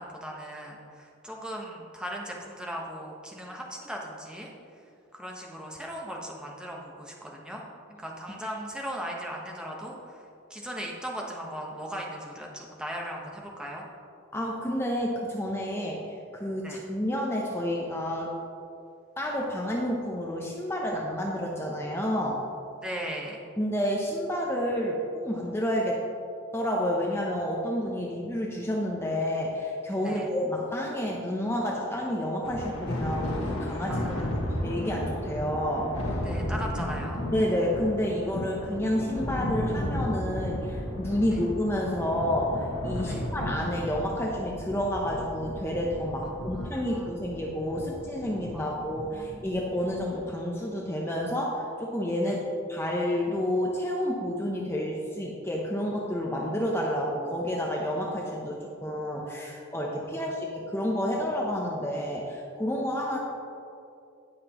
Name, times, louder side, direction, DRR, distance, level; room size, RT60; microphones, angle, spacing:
voice 1, 0.0-4.5 5.1-7.6 8.0-10.2 10.5-13.8 16.6-16.8 22.8-23.4 30.0-30.3 33.9-34.4 36.2-37.3 41.3-41.4 43.0-43.3 46.2-47.1 48.5-49.5 52.2-52.4 60.0-60.4, equal, 5° right, -2 dB, 1.0 m, -38 dB
voice 2, 14.3-18.3 19.2-22.4 23.6-26.0 26.5-34.2 34.6-35.9 37.3-63.2, equal, 10° left, -2 dB, 0.7 m, -30 dB
Thunder, 32.4-50.1, left 1 dB, 80° left, 1.7 m, -34 dB
17.5 x 5.9 x 3.0 m, 2.6 s
head